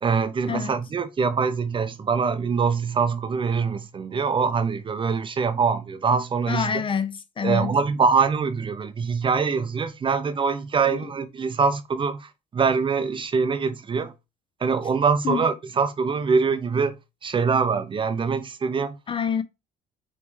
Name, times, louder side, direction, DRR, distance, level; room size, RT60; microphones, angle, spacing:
voice 1, 0.0-6.7 7.4-14.1 14.6-17.0 17.2-19.0, right 5 dB, 30° right, 0.5 m, -24 dB
voice 2, 6.5-7.8 10.9-11.0 15.2-15.4 19.1-19.4, left 7 dB, 30° left, 0.5 m, -26 dB
5.2 x 3.2 x 3.1 m
cardioid pair, 110°, 17 cm